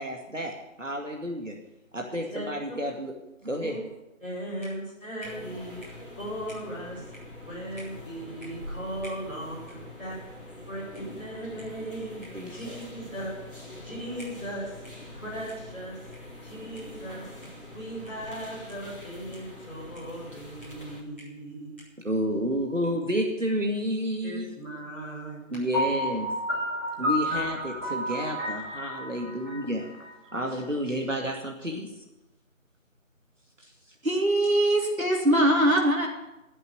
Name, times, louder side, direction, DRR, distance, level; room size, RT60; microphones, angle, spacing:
voice 1, 0.0-1.6 1.9-3.1 3.4-3.8 12.3-12.8 22.0-24.5 25.5-26.3 27.0-29.9 30.3-31.9 33.6-33.7, equal, 65° right, 0 dB, 2.3 m, -30 dB
voice 2, 2.3-2.7 3.6-3.8 4.2-10.2 10.7-13.3 13.8-16.0 16.4-17.2 17.7-21.7 24.2-25.6, right 1 dB, 10° left, -18 dB, 5.0 m, -38 dB
sound 1, 5.2-21.0, left 1 dB, 40° left, 2.6 m, -44 dB
Piano, 25.7-30.6, equal, 15° right, 5.9 m, -31 dB
voice 3, 34.0-36.1, right 1 dB, 85° right, 0 dB, 3.9 m, -22 dB
12.5 x 7.9 x 9.5 m, 0.97 s
figure-of-eight pair, 180°, 41 cm